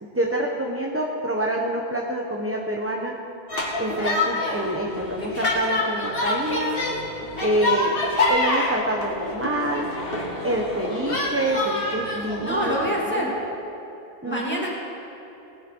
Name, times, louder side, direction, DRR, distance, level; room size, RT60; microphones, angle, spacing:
voice 1, 0.0-3.2 3.8-6.9 7.4-8.0 8.3-9.9 10.4-12.8 13.1-13.3 14.2-14.7, right 1 dB, 15° right, 0 dB, 0.8 m, -27 dB
sound 1, 3.5-12.9, left 2 dB, 60° left, 2.2 m, -26 dB
voice 2, 12.5-13.3 14.2-14.7, equal, 10° left, -5 dB, 2.8 m, -26 dB
19.0 x 10.5 x 4.6 m, 3.0 s
omnidirectional pair, 1.1 m